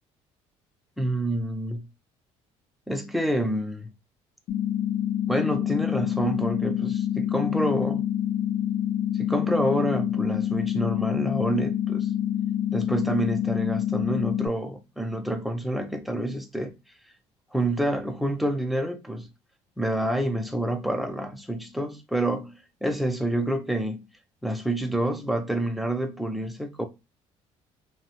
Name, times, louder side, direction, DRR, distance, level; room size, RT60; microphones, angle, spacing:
voice 1, 1.0-1.9 2.9-3.9 5.3-8.0 9.2-12.1 12.7-16.7 17.5-19.3 19.8-24.1 24.4-26.9, right 1 dB, ahead, 0.4 m, -28 dB
sound 1, 4.5-14.5, left 10 dB, 65° left, 0.4 m, -27 dB
2.6 x 2.1 x 2.8 m
supercardioid pair, 90°, 14 cm